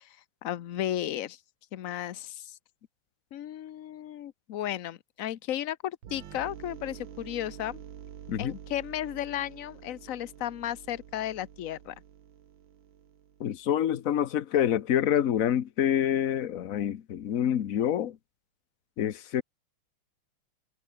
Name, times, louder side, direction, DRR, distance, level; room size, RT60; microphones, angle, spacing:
voice 1, 0.0-1.4 1.7-2.6 3.3-7.8 8.4-12.0, left 12 dB, 75° left, 0.7 m, -34 dB
sound 1, 6.0-13.6, right 10 dB, 65° right, 1.9 m, -48 dB
voice 2, 13.4-18.2 19.0-19.4, left 10 dB, 50° left, 1.1 m, -27 dB
omnidirectional pair, 2.4 m